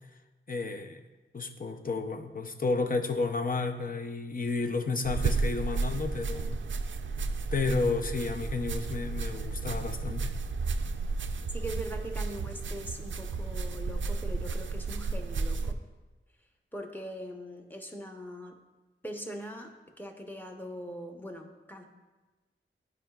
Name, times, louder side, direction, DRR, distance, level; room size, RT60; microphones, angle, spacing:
voice 1, 0.5-1.0 1.3-6.6 7.5-10.4, left 3 dB, 40° left, 6 dB, 0.6 m, -31 dB
sound 1, 5.0-15.7, right 4 dB, 65° right, 0.4 m, -33 dB
voice 2, 11.5-15.8 16.7-18.6 19.0-21.9, equal, 10° left, 2 dB, 0.9 m, -41 dB
11.5 x 4.9 x 2.4 m, 1.2 s
wide cardioid pair, 55°, 21 cm